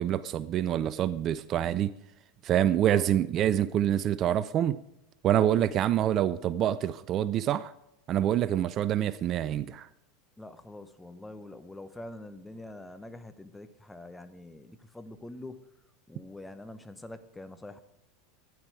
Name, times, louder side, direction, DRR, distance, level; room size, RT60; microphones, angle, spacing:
voice 1, 0.0-1.9 2.4-4.8 5.2-7.7 8.1-9.9, right 11 dB, 40° right, 0.5 m, -26 dB
voice 2, 10.4-15.6 16.1-17.8, left 1 dB, 10° left, 1.1 m, -45 dB
12.5 x 10.5 x 4.7 m
hypercardioid pair, 90°, 0 cm